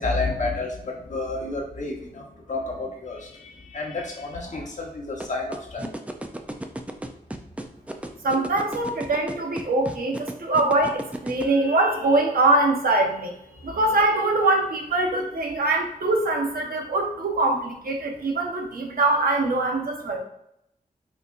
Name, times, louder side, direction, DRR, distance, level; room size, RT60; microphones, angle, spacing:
voice 1, 0.0-5.9, left 3 dB, 55° left, -1 dB, 1.0 m, -30 dB
sound 1, 5.2-11.4, right 1 dB, 10° right, 0.4 m, -33 dB
voice 2, 8.2-13.3 13.6-20.2, right 2 dB, 75° right, 2 dB, 0.8 m, -23 dB
4.2 x 4.0 x 2.4 m, 0.79 s
wide cardioid pair, 130°, 15 cm